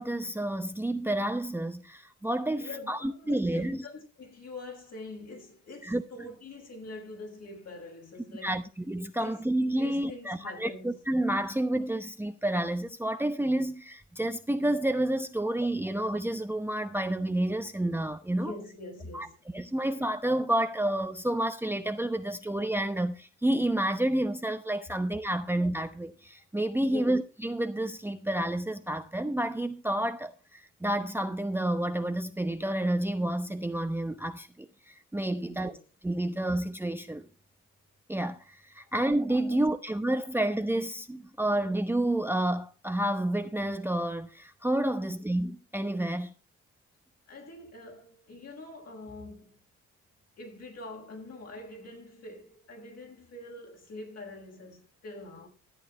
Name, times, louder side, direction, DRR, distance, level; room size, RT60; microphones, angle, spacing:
voice 1, 0.0-3.8 5.8-6.3 8.4-18.5 19.1-19.3 19.5-35.7 36.0-37.3 38.1-46.3, right 1 dB, 5° right, 0.8 m, -30 dB
voice 2, 2.6-8.6 9.2-9.5 9.8-10.9 18.3-19.3 26.8-27.0 35.4-35.8 39.5-39.6 45.0-45.1 47.3-49.6 50.4-55.5, left 2 dB, 55° left, 7.2 m, -44 dB
13.5 x 8.8 x 4.4 m
cardioid pair, 90°, 30 cm